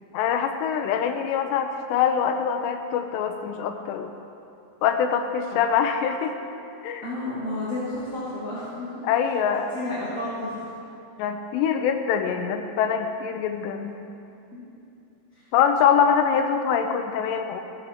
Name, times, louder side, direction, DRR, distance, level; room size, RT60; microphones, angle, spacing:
voice 1, 0.1-4.1 4.8-6.3 6.8-7.1 9.0-9.7 11.2-14.0 15.5-17.6, left 7 dB, 90° left, 6 dB, 3.0 m, -24 dB
voice 2, 7.0-9.0 9.7-10.7 14.5-14.6, left 2 dB, 25° left, -10 dB, 2.1 m, -31 dB
16.5 x 13.0 x 4.5 m, 2.7 s
omnidirectional pair, 4.9 m